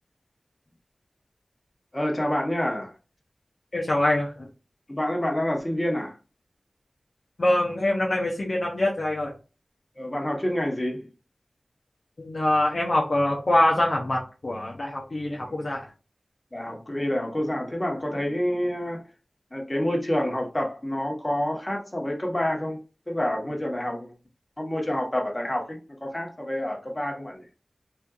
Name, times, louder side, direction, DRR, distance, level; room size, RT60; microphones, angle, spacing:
voice 1, 1.9-2.9 4.9-6.1 10.0-11.1 15.3-15.8 16.5-19.0 19.5-22.8 23.1-24.1 24.6-27.4, left 1 dB, 30° left, 1.4 m, -28 dB
voice 2, 3.7-4.3 7.4-9.3 12.2-15.8, left 1 dB, 60° left, 0.8 m, -24 dB
4.3 x 2.6 x 2.4 m
cardioid pair, 40°, 0 cm